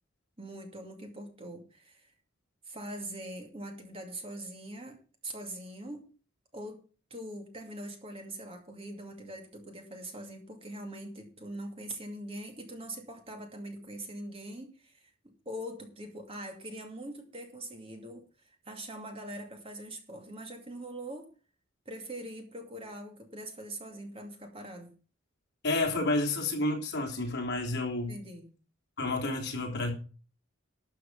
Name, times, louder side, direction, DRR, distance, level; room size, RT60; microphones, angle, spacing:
voice 1, 0.4-2.1 2.7-6.1 6.5-6.8 7.1-15.1 15.5-21.3 21.9-24.9 28.1-28.5, right 1 dB, 25° right, 2.4 m, -42 dB
voice 2, 25.6-28.2 29.0-29.9, left 2 dB, 55° left, 3.7 m, -30 dB
12.5 x 6.4 x 6.9 m
head